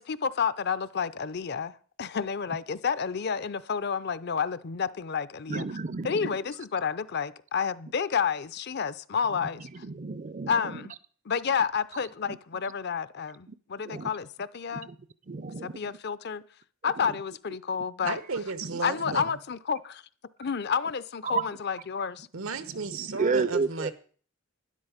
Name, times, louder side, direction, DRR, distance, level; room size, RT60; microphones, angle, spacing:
voice 1, 0.0-5.7 6.0-9.8 10.5-10.9 11.3-14.9 15.6-16.4 16.8-18.2 18.8-20.0 20.4-22.3, left 6 dB, 50° left, 0.6 m, -30 dB
voice 2, 5.5-6.4 9.7-10.8 12.3-12.4 13.8-14.1 14.9-15.0 15.3-15.9 17.0-17.1 18.6-18.7 19.1-19.2 21.2-21.4 22.7-23.9, right 4 dB, 35° right, 0.5 m, -31 dB
voice 3, 18.0-19.4 22.3-23.9, right 4 dB, 80° right, 1.1 m, -34 dB
12.0 x 10.5 x 5.1 m
head